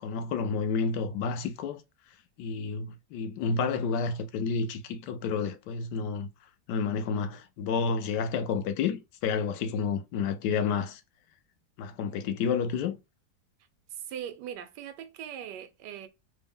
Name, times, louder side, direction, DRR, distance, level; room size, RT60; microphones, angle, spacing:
voice 1, 0.0-1.8 2.4-6.3 6.7-11.0 11.8-13.0, left 5 dB, 85° left, 1.2 m, -30 dB
voice 2, 13.9-16.1, right 9 dB, 85° right, 1.2 m, -40 dB
3.5 x 2.0 x 3.4 m
omnidirectional pair, 1.8 m